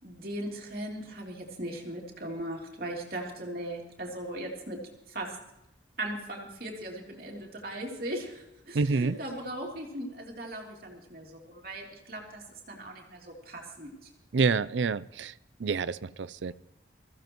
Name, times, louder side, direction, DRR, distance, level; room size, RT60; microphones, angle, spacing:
voice 1, 0.0-4.8 5.1-5.4 6.0-14.1, right 1 dB, 55° right, -1 dB, 3.1 m, -38 dB
voice 2, 8.7-9.2 14.3-15.3 15.6-16.5, right 4 dB, 85° right, 17 dB, 0.5 m, -27 dB
23.0 x 15.0 x 3.1 m, 0.89 s
head